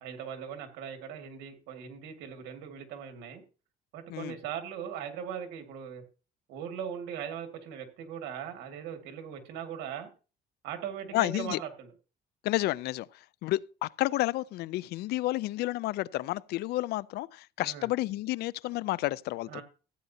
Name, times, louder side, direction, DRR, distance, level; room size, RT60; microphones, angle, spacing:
voice 1, 0.0-3.4 3.9-6.0 6.5-10.1 10.6-11.9 17.6-17.9 19.5-19.6, right 8 dB, 90° right, 2.0 m, -39 dB
voice 2, 11.1-11.6 12.4-13.1 13.4-19.6, left 17 dB, 75° left, 0.4 m, -31 dB
15.5 x 9.0 x 2.8 m
cardioid pair, 110°, 17 cm